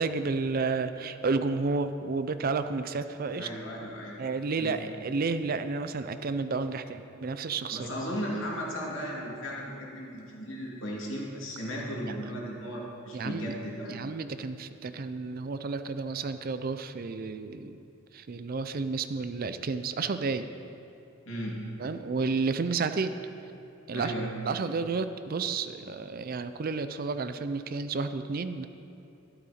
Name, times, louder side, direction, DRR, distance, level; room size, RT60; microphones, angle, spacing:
voice 1, 0.0-3.5 4.2-7.9 12.1-12.2 13.1-13.5 13.9-20.5 21.8-23.2 23.9-24.1 24.4-28.7, right 4 dB, 45° right, 10 dB, 0.4 m, -31 dB
voice 2, 3.4-4.2 4.6-4.8 7.7-14.0 21.3-21.6 23.9-24.3, equal, 65° left, -3 dB, 2.6 m, -36 dB
12.0 x 12.0 x 4.3 m, 2.9 s
head